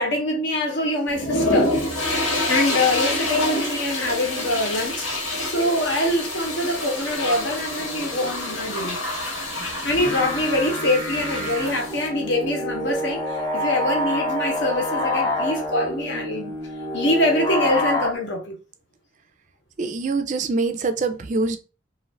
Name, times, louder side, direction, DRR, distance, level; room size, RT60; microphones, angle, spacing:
voice 1, 0.0-1.7 2.5-9.0 9.8-16.6 16.9-18.5, left 1 dB, 65° left, 0.9 m, -24 dB
sound 1, 1.1-12.1, left 1 dB, 85° left, 1.4 m, -27 dB
sound 2, 9.8-18.1, left 1 dB, 15° left, 0.6 m, -27 dB
voice 2, 19.8-21.6, right 3 dB, 40° right, 0.3 m, -24 dB
2.5 x 2.4 x 3.2 m
head